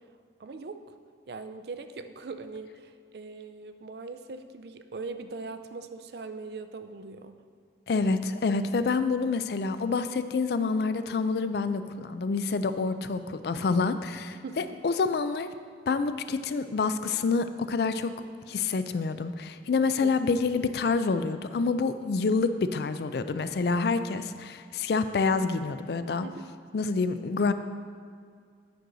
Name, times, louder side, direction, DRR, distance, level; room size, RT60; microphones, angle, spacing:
voice 1, 0.4-0.9 1.3-7.4 14.4-14.7 20.0-20.2 26.2-26.5, right 4 dB, 60° right, 9 dB, 0.4 m, -41 dB
voice 2, 7.9-15.5 15.9-18.1 18.5-26.3 26.7-27.5, left 4 dB, 60° left, 11 dB, 0.4 m, -27 dB
9.3 x 6.2 x 3.9 m, 2.1 s
head